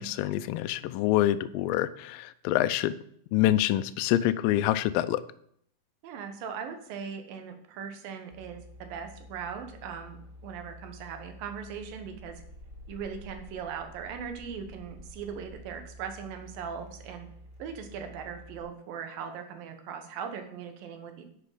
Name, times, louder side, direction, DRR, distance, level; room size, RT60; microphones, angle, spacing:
voice 1, 0.0-3.0 3.3-5.2, left 13 dB, 85° left, 12 dB, 2.1 m, -26 dB
voice 2, 6.0-12.4 12.9-17.3 17.6-21.2, right 7 dB, 70° right, 7 dB, 2.8 m, -39 dB
sound 1, 8.3-18.6, equal, 30° right, 1.1 m, -49 dB
10.5 x 7.8 x 5.0 m, 0.67 s
omnidirectional pair, 4.5 m